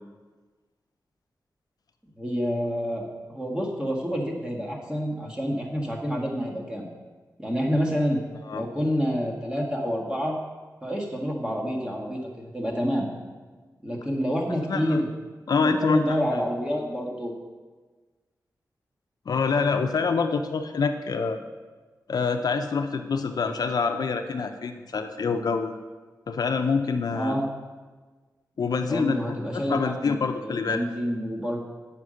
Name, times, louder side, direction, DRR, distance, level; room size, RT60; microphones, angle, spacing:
voice 1, 2.2-6.9 7.4-8.2 8.5-10.4 10.8-13.1 13.8-15.1 15.5-17.3 27.1-27.4 28.9-29.8 30.0-31.7, equal, 10° right, -1 dB, 1.8 m, -28 dB
voice 2, 14.7-15.0 15.5-16.2 19.3-21.4 22.1-25.8 26.3-27.4 28.6-30.8, left 5 dB, 70° left, 6 dB, 0.6 m, -26 dB
8.2 x 5.8 x 6.3 m, 1.4 s
wide cardioid pair, 90°, 7 cm